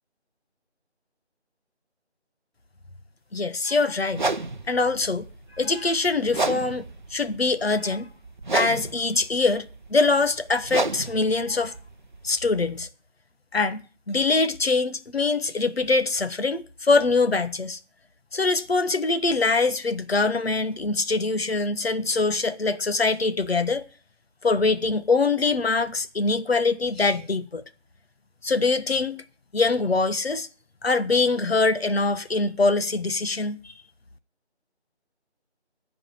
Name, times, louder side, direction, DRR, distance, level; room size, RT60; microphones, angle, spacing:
voice 1, 3.3-4.2 4.7-5.3 5.5-8.1 8.5-11.7 12.2-12.9 13.5-17.8 18.3-23.8 24.4-27.6 28.4-29.2 29.5-30.5 30.8-33.7, left 3 dB, 60° left, 1.3 m, -23 dB
sound 1, 4.1-12.9, right 3 dB, 45° right, 0.7 m, -32 dB
13.5 x 5.1 x 9.2 m
figure-of-eight pair, 170°, 34 cm